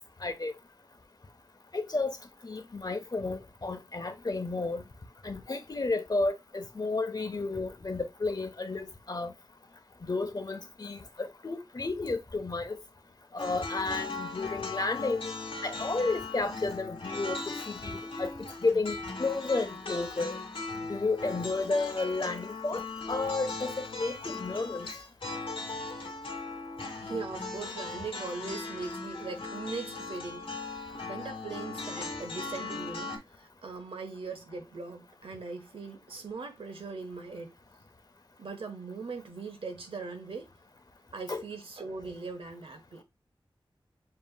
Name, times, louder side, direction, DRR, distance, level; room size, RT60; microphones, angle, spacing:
voice 1, 0.2-0.5 1.7-2.2 2.4-4.8 5.2-9.3 10.0-12.8 13.3-15.3 15.6-20.4 20.9-24.9 41.3-41.4, left 3 dB, 45° left, 0.9 m, -32 dB
sound 1, 13.4-33.2, left 3 dB, 90° left, 2.0 m, -38 dB
voice 2, 27.0-30.5 31.0-37.5 38.4-40.5 41.1-43.0, right 4 dB, 85° right, 1.1 m, -40 dB
7.5 x 3.1 x 2.2 m
wide cardioid pair, 75°, 9 cm